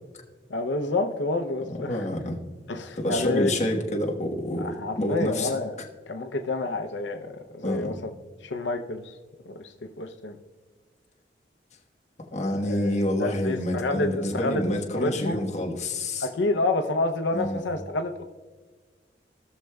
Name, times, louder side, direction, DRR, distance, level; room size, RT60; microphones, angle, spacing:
voice 1, 0.5-2.1 2.7-3.5 4.6-5.8 6.1-8.1 8.4-9.1 9.5-10.4 12.4-15.5 16.2-18.2, left 2 dB, 85° left, 5 dB, 0.6 m, -29 dB
voice 2, 1.7-2.4 3.0-5.5 7.6-7.9 12.3-16.3 17.3-17.6, left 1 dB, 40° left, -1 dB, 1.2 m, -28 dB
17.5 x 6.4 x 2.3 m, 1.4 s
head